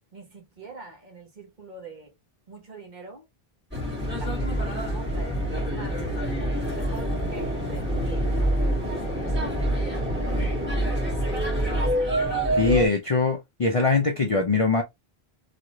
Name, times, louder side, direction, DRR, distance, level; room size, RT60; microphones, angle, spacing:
voice 1, 0.1-2.1 2.5-3.3 4.2-6.0 6.8-10.0, right 3 dB, 50° right, 1.2 m, -43 dB
sound 1, 3.7-12.9, right 1 dB, 10° right, 1.7 m, -26 dB
voice 2, 12.6-14.8, left 3 dB, 45° left, 0.5 m, -22 dB
3.1 x 2.9 x 2.5 m
omnidirectional pair, 1.0 m